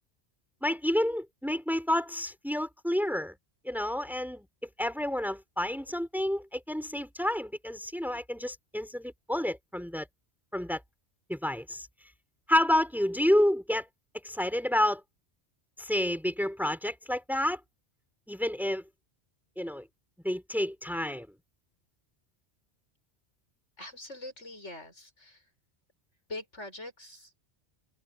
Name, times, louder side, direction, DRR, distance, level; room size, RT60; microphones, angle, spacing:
voice 1, 0.6-3.3 3.6-4.5 4.8-10.1 10.5-10.8 11.3-11.9 12.5-13.9 14.2-15.0 15.8-17.6 18.3-18.8 19.6-19.9 20.2-21.3, left 1 dB, ahead, 4.7 m, -29 dB
voice 2, 23.8-25.4 26.3-27.4, left 2 dB, 85° left, 7.6 m, -43 dB
omnidirectional pair, 1.2 m